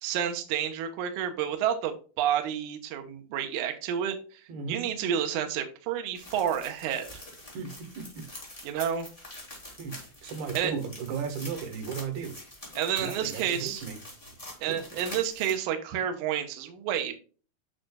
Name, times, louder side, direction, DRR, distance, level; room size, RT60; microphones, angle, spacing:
voice 1, 0.0-7.1 8.6-9.1 10.5-10.7 12.8-13.8 14.6-17.2, right 9 dB, 65° right, 5 dB, 2.2 m, -30 dB
voice 2, 4.5-4.8 7.5-8.2 9.8-12.4 13.0-14.0 14.6-14.8, right 6 dB, 90° right, 6 dB, 3.4 m, -36 dB
sound 1, 6.2-15.5, left 1 dB, 10° left, 2.8 m, -45 dB
8.9 x 5.9 x 2.3 m, 0.37 s
omnidirectional pair, 4.3 m